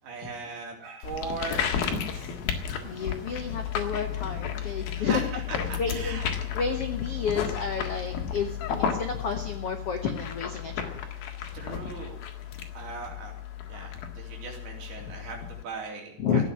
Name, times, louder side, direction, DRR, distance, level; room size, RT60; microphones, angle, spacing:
voice 1, 0.0-2.3 5.0-6.5 8.5-8.6 11.5-12.2 12.8-13.3 13.7-16.5, right 4 dB, 65° right, 0 dB, 5.3 m, -39 dB
sound 1, 1.0-15.6, left 8 dB, 65° left, 3.4 m, -33 dB
voice 2, 2.8-5.2 5.5-6.2 6.5-11.0 16.2-16.4, left 6 dB, 80° left, 5 dB, 1.3 m, -31 dB
15.5 x 9.3 x 9.4 m, 0.77 s
omnidirectional pair, 4.9 m